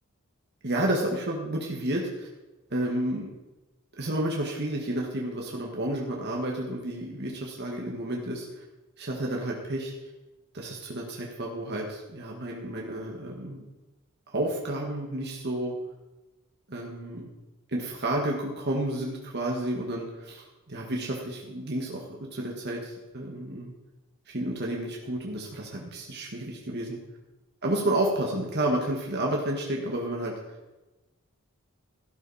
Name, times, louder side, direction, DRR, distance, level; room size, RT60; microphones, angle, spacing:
voice 1, 0.6-2.3 2.7-3.3 4.0-8.6 9.0-9.9 10.5-13.6 14.3-15.7 16.7-17.3 17.7-23.7 24.3-27.0 27.6-30.3, right 1 dB, 50° right, -1 dB, 1.8 m, -31 dB
13.0 x 12.0 x 4.3 m, 1.1 s
head